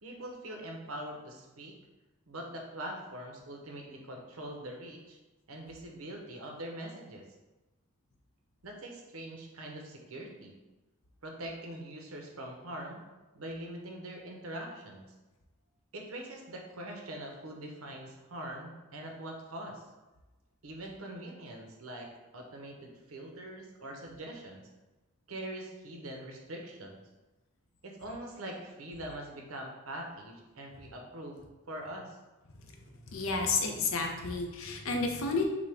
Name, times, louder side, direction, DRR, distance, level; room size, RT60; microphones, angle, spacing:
voice 1, 0.0-1.7 2.3-5.2 5.5-7.2 8.6-10.5 11.2-13.0 13.3-15.0 15.9-19.8 20.6-22.1 22.3-24.7 25.3-27.0 27.8-32.2, right 1 dB, 80° right, 1 dB, 0.8 m, -43 dB
voice 2, 33.1-35.4, left 4 dB, 70° left, 2 dB, 0.7 m, -31 dB
6.1 x 2.2 x 3.4 m, 1.1 s
head